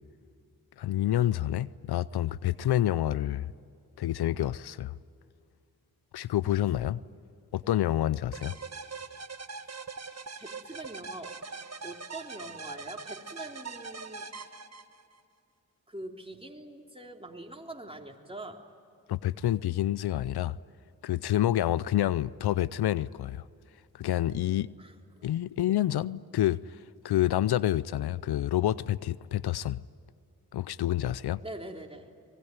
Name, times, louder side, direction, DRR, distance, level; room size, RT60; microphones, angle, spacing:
voice 1, 0.8-3.5 4.0-4.9 6.1-7.0 7.5-8.5 19.1-20.6 21.0-23.4 23.9-24.7 25.2-26.6 27.0-29.8 30.5-31.4, left 13 dB, 80° left, 0.6 m, -28 dB
sound 1, 8.3-15.2, right 4 dB, 40° right, 1.6 m, -42 dB
voice 2, 10.1-11.4 11.8-14.3 15.9-18.6 24.8-25.6 31.4-32.1, right 1 dB, 15° right, 3.7 m, -44 dB
25.0 x 21.5 x 9.5 m
supercardioid pair, 40°, 38 cm